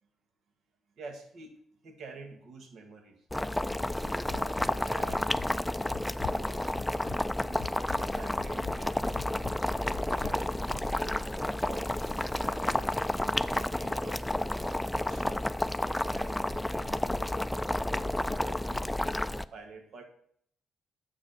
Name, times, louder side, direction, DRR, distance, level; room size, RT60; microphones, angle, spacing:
voice 1, 1.0-1.6 1.8-3.2 3.9-4.6 4.9-5.3 6.3-6.9 7.4-7.6 7.9-9.6 10.0-10.6 10.8-11.9 12.2-12.8 13.3-15.5 16.1-17.3 17.9-19.2 19.5-20.1, right 3 dB, 65° right, 5 dB, 1.8 m, -48 dB
Boiling, 3.3-19.4, left 1 dB, 5° left, 0.4 m, -31 dB
sound 1, 4.3-4.8 5.1-5.5 5.9-6.4 6.8-7.2 7.6-8.0 8.4-8.8 9.2-9.5 9.9-10.4 10.7-10.8, left 11 dB, 80° left, 0.6 m, -42 dB
10.0 x 7.4 x 5.8 m, 0.66 s
cardioid pair, 90°, 0 cm